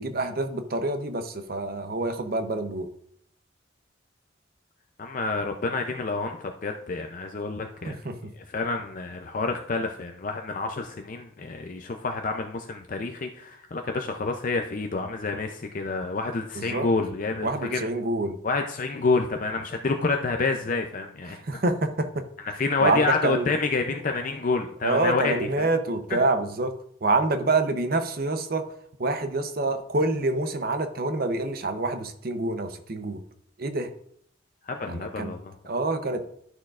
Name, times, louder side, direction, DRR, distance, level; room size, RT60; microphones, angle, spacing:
voice 1, 0.0-2.9 7.8-8.3 16.5-16.9 17.4-18.4 21.3-22.3 22.8-23.5 24.8-26.7 27.0-28.6 29.0-33.2 33.6-33.9 34.9-35.3 35.7-36.2, right 2 dB, 55° right, 8 dB, 0.7 m, -27 dB
voice 2, 5.0-8.0 8.5-17.8 18.4-21.4 22.6-25.7 34.7-35.5, left 3 dB, 45° left, 4 dB, 0.5 m, -28 dB
11.5 x 6.3 x 2.4 m, 0.67 s
head